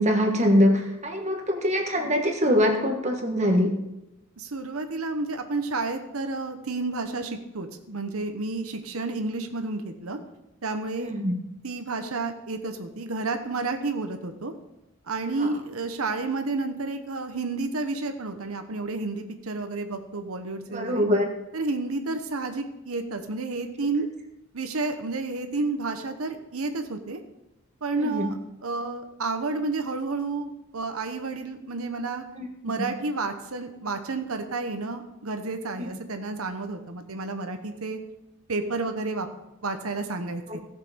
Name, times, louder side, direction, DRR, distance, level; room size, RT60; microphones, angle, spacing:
voice 1, 0.0-3.7 11.0-11.3 15.4-15.5 20.7-21.3 28.0-28.3 32.3-32.5 35.8-35.9 40.5-40.6, equal, 35° right, 3 dB, 1.4 m, -23 dB
voice 2, 4.4-10.2 10.6-11.1 11.6-14.5 15.1-21.1 21.5-24.1 24.5-27.2 27.8-32.2 32.6-38.0 38.5-39.3 39.6-40.6, right 3 dB, 90° right, 7 dB, 1.0 m, -31 dB
15.5 x 6.7 x 5.1 m, 0.94 s
head